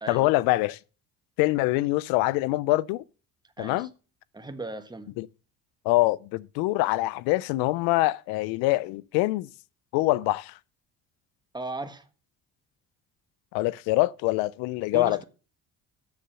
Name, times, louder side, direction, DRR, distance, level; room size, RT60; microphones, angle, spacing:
voice 1, 0.1-0.8 1.4-3.0 3.6-3.9 5.2-5.3 5.8-9.5 9.9-10.6 13.5-15.2, left 19 dB, 90° left, 0.5 m, -24 dB
voice 2, 3.6-3.9 4.3-5.1 11.5-12.1 14.9-15.2, right 2 dB, 10° right, 1.4 m, -37 dB
7.1 x 6.7 x 7.6 m
supercardioid pair, 80°, 34 cm